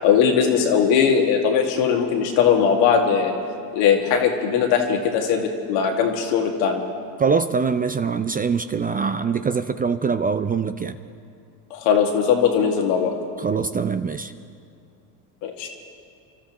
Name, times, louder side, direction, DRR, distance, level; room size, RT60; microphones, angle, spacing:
voice 1, 0.0-3.3 3.7-6.8 11.7-13.1 15.4-15.7, left 7 dB, 75° left, 2 dB, 2.0 m, -19 dB
voice 2, 7.2-11.0 13.4-14.3, right 5 dB, 20° right, 10 dB, 0.4 m, -23 dB
30.0 x 13.0 x 3.0 m, 2.4 s
hypercardioid pair, 80°, 48 cm